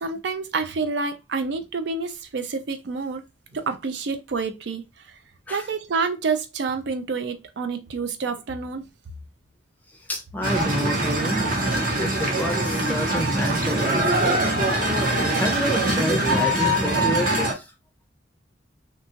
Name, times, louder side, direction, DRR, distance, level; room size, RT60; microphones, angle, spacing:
voice 1, 0.0-3.2 3.5-4.8 5.5-8.9, right 4 dB, 70° right, 0.4 m, -28 dB
voice 2, 10.1-11.4 11.7-14.4 15.3-17.7, equal, 10° left, 0.5 m, -29 dB
sound 1, 10.4-17.5, right 1 dB, 45° right, 0.8 m, -23 dB
2.7 x 2.3 x 2.7 m
head